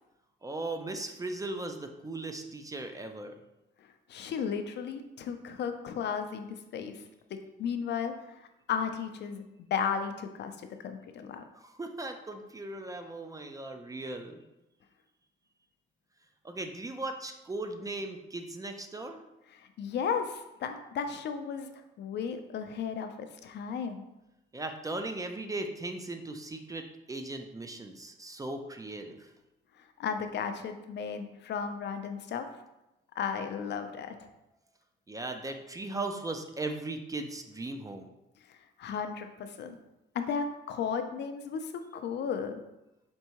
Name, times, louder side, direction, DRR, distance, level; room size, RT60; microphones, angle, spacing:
voice 1, 0.4-3.4 11.6-14.4 16.4-19.2 24.5-29.3 35.1-38.1, right 2 dB, 15° right, 6 dB, 0.4 m, -38 dB
voice 2, 4.1-7.0 7.3-8.3 8.7-9.4 9.7-10.5 10.8-11.4 19.6-21.7 22.0-24.1 30.0-32.5 33.2-34.3 38.5-39.8 40.1-42.5, left 6 dB, 60° left, 7 dB, 0.4 m, -34 dB
4.4 x 2.6 x 2.9 m, 0.94 s
cardioid pair, 90°, 20 cm